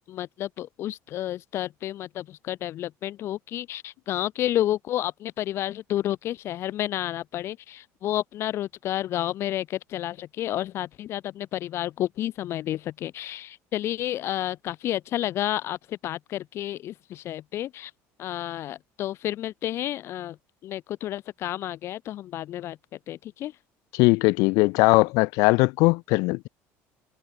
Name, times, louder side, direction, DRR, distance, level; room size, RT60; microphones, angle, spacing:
voice 1, 0.1-17.9 18.2-20.4 20.6-22.8 23.1-23.6, left 13 dB, 45° left, 2.8 m, -30 dB
voice 2, 23.9-26.5, left 26 dB, 75° left, 4.1 m, -20 dB
cardioid pair, 160°, 6 cm